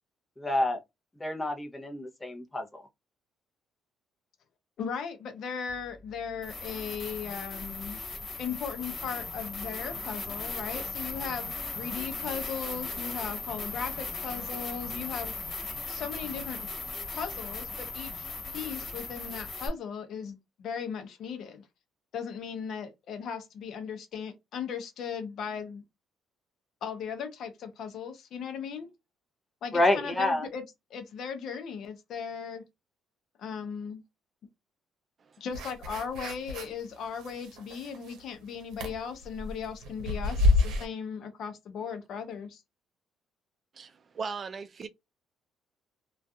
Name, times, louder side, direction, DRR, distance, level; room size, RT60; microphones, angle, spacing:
voice 1, 0.4-0.8 1.2-2.8 29.7-30.5, left 1 dB, 15° left, 0.8 m, -28 dB
voice 2, 4.8-8.0 8.4-15.3 15.9-16.7 17.1-21.7 22.1-25.8 26.8-28.9 29.6-30.6 30.9-32.6 33.4-34.0 35.4-42.6, left 6 dB, 65° left, 0.6 m, -37 dB
sound 1, 5.7-5.8 6.4-19.7, left 3 dB, 40° left, 1.4 m, -37 dB
sound 2, 35.5-36.8 37.2-38.3 38.7-40.9, left 2 dB, 80° right, 0.7 m, -28 dB
voice 3, 43.7-44.9, right 5 dB, 40° right, 0.4 m, -38 dB
2.6 x 2.3 x 2.3 m
cardioid pair, 100°, 0 cm